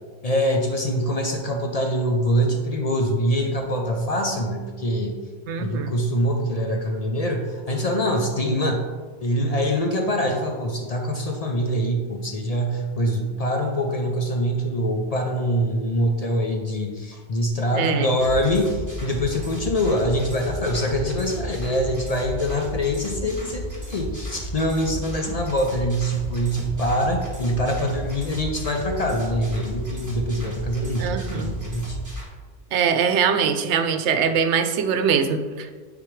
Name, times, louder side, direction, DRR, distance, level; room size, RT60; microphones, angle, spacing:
voice 1, 0.2-5.2 5.6-8.8 9.2-32.0, equal, 45° left, 3 dB, 0.6 m, -24 dB
voice 2, 5.5-5.9 17.7-18.1 31.0-31.5 32.7-35.8, right 6 dB, 90° right, 8 dB, 0.9 m, -22 dB
sound 1, 18.2-32.2, right 1 dB, 15° right, 1.2 m, -34 dB
8.9 x 3.9 x 3.2 m, 1.5 s
omnidirectional pair, 1.1 m